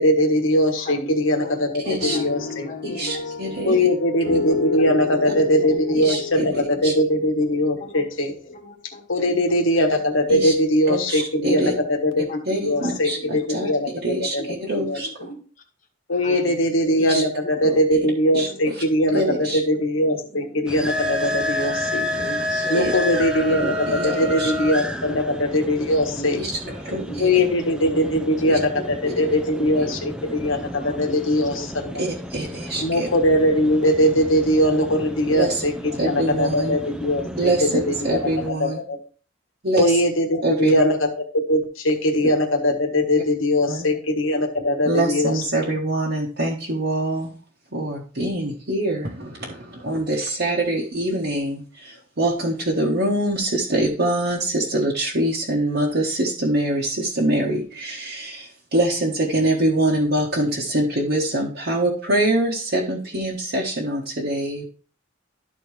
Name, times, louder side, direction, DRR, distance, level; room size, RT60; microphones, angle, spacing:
voice 1, 0.0-3.0 3.6-8.3 9.1-12.3 12.6-14.4 14.8-15.3 16.1-22.1 22.7-26.4 27.2-32.0 32.8-38.2 38.5-39.0 39.7-45.7, left 1 dB, 75° left, 4 dB, 1.4 m, -21 dB
voice 2, 0.8-3.9 4.8-6.2 6.5-7.3 7.8-9.7 11.4-11.6 12.3-12.4 12.8-15.4 16.1-17.5 18.3-20.7 22.1-23.8 26.2-26.4 26.9-27.3 27.7-30.0 30.8-32.0, equal, 40° left, 4 dB, 1.2 m, -38 dB
voice 3, 1.8-2.2 2.8-3.7 6.0-6.5 6.8-6.9 10.3-10.5 10.9-11.7 12.5-13.7 14.0-15.3 17.0-17.2 17.6-17.8 18.3-18.5 19.1-19.6 22.7-22.9 23.6-24.5 26.4-26.5 26.8-27.4 28.5-28.6 29.7-29.9 32.0-33.1 35.3-35.6 36.0-36.8 37.4-38.8 39.6-39.9 40.4-40.8 43.7-43.9 44.8-47.3 47.7-64.6, right 1 dB, 55° right, -5 dB, 1.4 m, -24 dB
sound 1, 2.0-8.0, left 5 dB, 60° left, 1.3 m, -31 dB
sound 2, 20.7-38.5, equal, 5° right, 0.5 m, -33 dB
Wind instrument woodwind instrument, 20.9-24.8, left 2 dB, 30° right, 1.1 m, -28 dB
12.0 x 4.3 x 3.2 m, 0.40 s
head